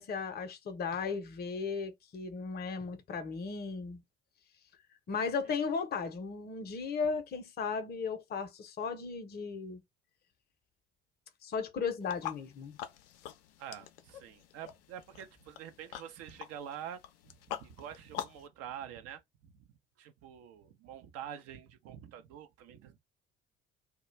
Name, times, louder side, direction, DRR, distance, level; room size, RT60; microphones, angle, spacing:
voice 1, 0.0-4.0 5.1-9.8 11.4-12.8, left 5 dB, 35° left, 0.7 m, -36 dB
sound 1, 12.0-18.5, left 11 dB, 70° left, 0.5 m, -45 dB
voice 2, 13.6-19.7 20.0-23.0, right 9 dB, 55° right, 0.6 m, -47 dB
2.3 x 2.2 x 3.1 m
figure-of-eight pair, 55°, 30 cm